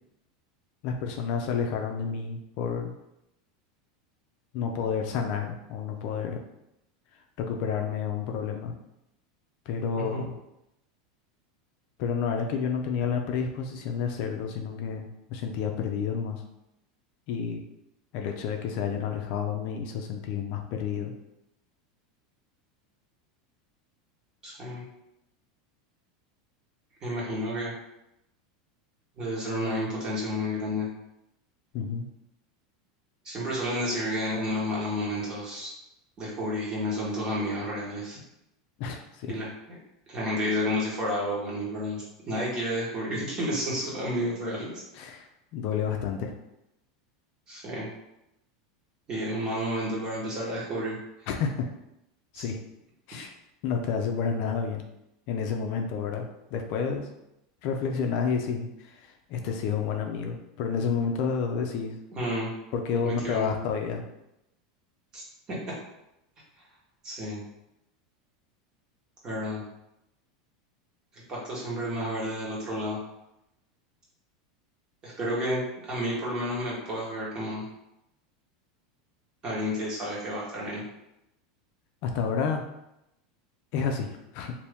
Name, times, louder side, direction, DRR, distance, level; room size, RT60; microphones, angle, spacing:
voice 1, 0.8-2.9 4.5-6.4 7.4-8.8 9.7-10.4 12.0-16.4 17.3-17.6 18.1-21.1 31.7-32.1 38.8-39.3 44.9-46.3 51.3-51.7 52.3-52.6 53.1-53.3 53.6-54.8 55.3-57.1 57.6-62.0 62.7-64.0 82.0-82.6 83.7-84.5, left 6 dB, 55° left, 3 dB, 0.4 m, -30 dB
voice 2, 9.9-10.3 24.4-24.8 27.0-27.7 29.2-30.9 33.2-35.7 36.2-38.2 39.3-39.8 40.1-44.7 47.5-47.9 49.1-51.0 52.3-52.4 62.2-62.5 63.0-63.5 65.1-65.2 67.0-67.4 69.2-69.6 71.3-73.0 75.0-77.6 79.4-80.8, equal, 30° right, -5 dB, 1.2 m, -31 dB
2.8 x 2.6 x 3.4 m, 0.85 s
supercardioid pair, 140°, 3 cm